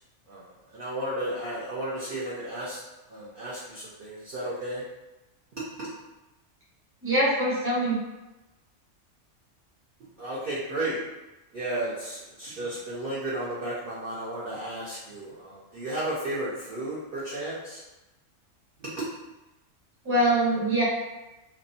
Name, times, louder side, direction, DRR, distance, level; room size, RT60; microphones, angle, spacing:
voice 1, 0.3-2.8 3.1-4.8 5.5-5.9 10.2-11.0 11.5-17.8 18.8-19.1, right 1 dB, 60° right, -8 dB, 0.6 m, -33 dB
voice 2, 7.0-8.0 20.0-20.8, right 1 dB, 10° right, -8 dB, 0.7 m, -23 dB
2.6 x 2.1 x 2.6 m, 1.0 s
omnidirectional pair, 1.3 m